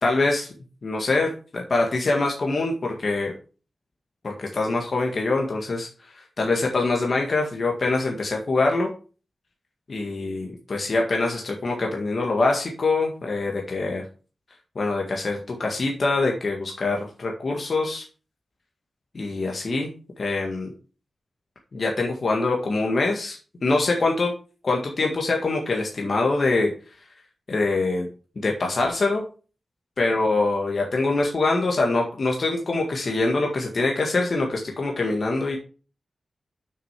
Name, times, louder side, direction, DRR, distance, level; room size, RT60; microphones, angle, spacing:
voice 1, 0.0-0.5 0.8-3.3 4.2-5.9 6.4-8.9 9.9-14.0 14.7-18.0 19.1-19.9 20.2-20.7 21.7-24.3 24.6-26.7 27.5-28.1 28.3-29.2 30.0-35.6, left 3 dB, 50° left, 0 dB, 1.7 m, -24 dB
6.7 x 6.4 x 5.8 m, 0.37 s
wide cardioid pair, 95°, 0 cm